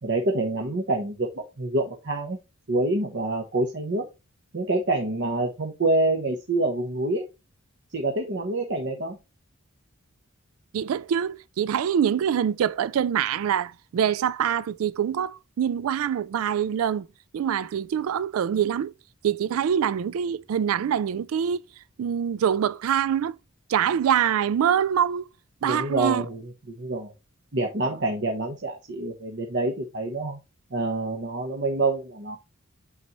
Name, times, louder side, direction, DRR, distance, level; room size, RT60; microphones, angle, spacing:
voice 1, 0.0-2.4 2.7-4.1 4.5-7.2 7.9-9.2 25.6-26.4 26.7-27.1 27.5-30.4 30.7-32.4, right 2 dB, 60° right, 1.0 m, -26 dB
voice 2, 10.7-17.1 17.3-18.9 19.2-21.6 22.0-23.4 23.7-25.3 25.6-26.3, right 8 dB, 85° right, 0.3 m, -24 dB
8.4 x 4.0 x 3.0 m
head